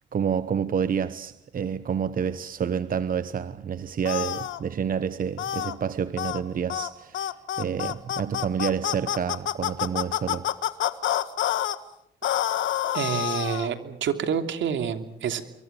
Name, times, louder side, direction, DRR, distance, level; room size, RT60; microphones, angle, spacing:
voice 1, 0.1-7.3 7.6-10.5, right 7 dB, 45° right, 1.0 m, -28 dB
sound 1, 4.0-4.6 5.4-5.7 6.2-6.4 6.7-6.9 7.1-11.8 12.2-13.7, left 12 dB, 75° left, 1.6 m, -27 dB
voice 2, 12.9-15.4, right 8 dB, 70° right, 3.0 m, -28 dB
27.5 x 23.5 x 7.1 m
cardioid pair, 90°, 20 cm